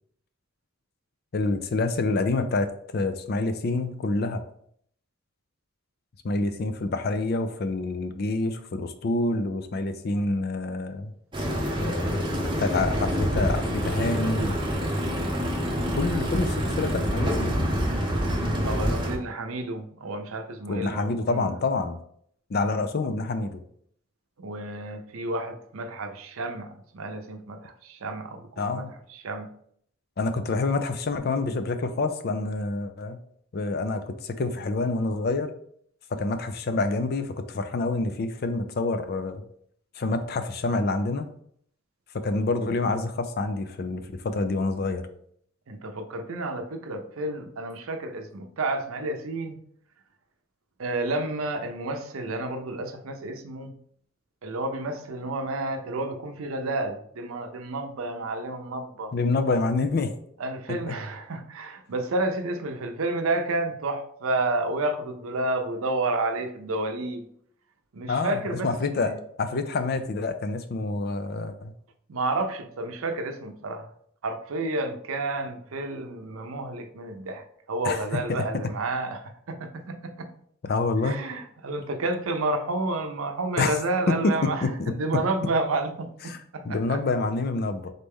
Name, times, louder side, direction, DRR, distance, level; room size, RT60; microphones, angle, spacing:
voice 1, 1.3-2.7 2.9-4.4 6.2-11.1 11.8-14.6 15.7-17.6 20.7-22.0 22.5-23.6 28.6-28.9 30.2-33.2 33.5-35.5 36.1-39.4 40.0-41.3 42.2-45.1 59.1-60.1 60.7-60.9 68.1-69.1 69.4-71.7 77.8-78.2 80.6-81.2 83.6-83.8 84.2-84.9 86.3-86.4 86.6-87.9, left 3 dB, 50° left, 8 dB, 0.4 m, -27 dB
sound 1, 11.3-19.2, equal, 25° right, 0.7 m, -26 dB
voice 2, 18.6-21.6 24.4-29.5 45.7-49.6 50.8-53.7 54.4-59.1 60.4-67.3 67.9-69.2 72.1-73.9 74.2-80.3 81.0-87.0, right 2 dB, 85° right, 7 dB, 0.6 m, -30 dB
4.0 x 3.2 x 3.5 m, 0.65 s
head